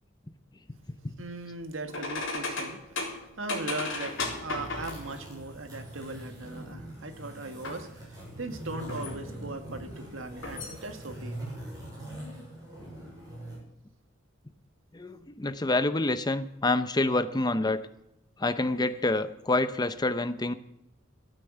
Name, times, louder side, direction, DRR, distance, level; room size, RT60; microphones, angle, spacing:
voice 1, 1.2-11.5, right 2 dB, 80° right, 7 dB, 1.7 m, -39 dB
sound 1, 1.9-5.2 7.6-7.8 8.4-9.3 10.3-10.7, left 3 dB, 70° left, 3.7 m, -35 dB
sound 2, 3.8-13.6, right 1 dB, 20° right, 6.7 m, -43 dB
voice 2, 14.9-17.8 18.4-20.5, left 2 dB, 20° left, 11 dB, 0.6 m, -27 dB
13.5 x 9.1 x 8.0 m, 0.85 s
head